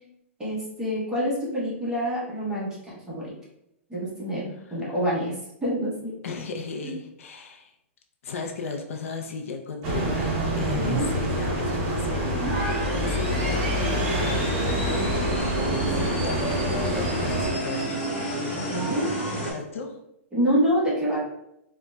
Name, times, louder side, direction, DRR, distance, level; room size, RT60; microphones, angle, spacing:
voice 1, 0.4-3.3 3.9-5.3 5.6-6.1 6.8-6.9 10.7-11.1 18.7-19.1 20.3-21.2, equal, 10° right, -7 dB, 0.9 m, -27 dB
voice 2, 6.2-7.7 8.2-10.3 10.6-12.5 12.9-14.0 15.6-18.0 19.5-20.0, left 4 dB, 80° left, 4 dB, 0.4 m, -35 dB
sound 1, 9.8-17.5, right 1 dB, 35° right, 0.7 m, -26 dB
sound 2, 12.1-19.5, right 1 dB, 25° left, 1.3 m, -31 dB
3.7 x 2.1 x 2.2 m, 0.81 s
hypercardioid pair, 150°, 7 cm